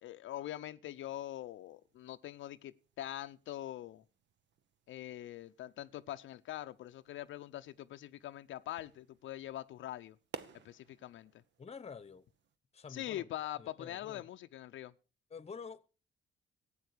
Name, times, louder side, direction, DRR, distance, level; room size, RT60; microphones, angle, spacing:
voice 1, 0.0-4.0 4.9-10.2 10.6-11.3 12.9-14.9, left 13 dB, 75° left, 0.6 m, -43 dB
sound 1, 0.9-12.6, right 7 dB, 65° right, 1.2 m, -57 dB
voice 2, 11.6-12.3 12.7-14.2 15.3-15.9, left 5 dB, 30° left, 1.0 m, -48 dB
14.5 x 8.8 x 6.6 m
cardioid pair, 90°, 20 cm